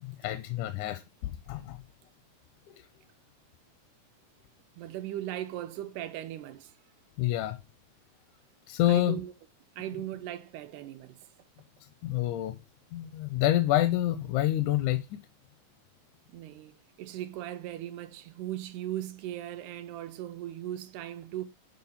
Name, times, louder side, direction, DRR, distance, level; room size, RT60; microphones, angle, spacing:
voice 1, 0.0-1.8 7.2-7.6 8.7-9.2 12.0-12.6 12.9-15.2, left 14 dB, 85° left, 2.1 m, -28 dB
voice 2, 4.8-6.8 8.9-9.3 9.8-11.3 16.3-21.5, right 13 dB, 85° right, 2.1 m, -38 dB
8.7 x 3.8 x 5.7 m
omnidirectional pair, 3.5 m